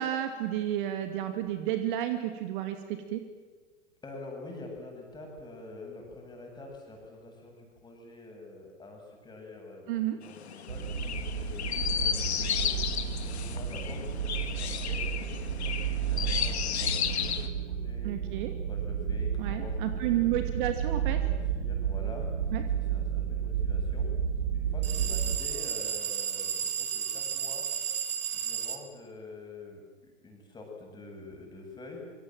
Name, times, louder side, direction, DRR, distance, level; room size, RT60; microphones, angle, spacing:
voice 1, 0.0-3.2 9.9-10.2 18.0-18.5 19.4-21.2 22.5-22.6, right 12 dB, 40° right, 7 dB, 2.4 m, -31 dB
voice 2, 4.0-12.8 13.2-18.1 18.5-20.4 21.1-24.1 24.5-27.7 28.3-32.1, left 2 dB, 10° left, 1 dB, 7.8 m, -46 dB
Chirp tweet, 10.2-17.5, left 8 dB, 60° left, 2.4 m, -33 dB
sound 1, 10.7-25.4, right 8 dB, 65° right, 2.3 m, -32 dB
sound 2, 24.8-28.8, right 8 dB, 20° right, 1.9 m, -33 dB
26.5 x 25.0 x 7.6 m, 1.4 s
figure-of-eight pair, 110°, 37 cm